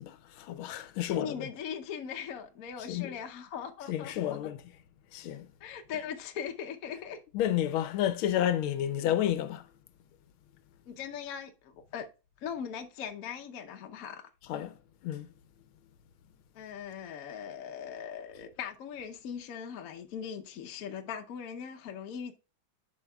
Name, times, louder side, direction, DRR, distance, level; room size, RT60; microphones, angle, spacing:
voice 1, 0.0-1.5 2.8-3.2 3.9-4.6 5.1-5.5 7.3-9.7 14.5-14.8 15.0-15.3, left 11 dB, 80° left, 1.5 m, -31 dB
voice 2, 1.0-4.4 5.6-7.2 10.9-12.1 12.4-14.3 16.5-22.3, left 8 dB, 60° left, 1.0 m, -40 dB
11.0 x 5.5 x 2.3 m
omnidirectional pair, 2.2 m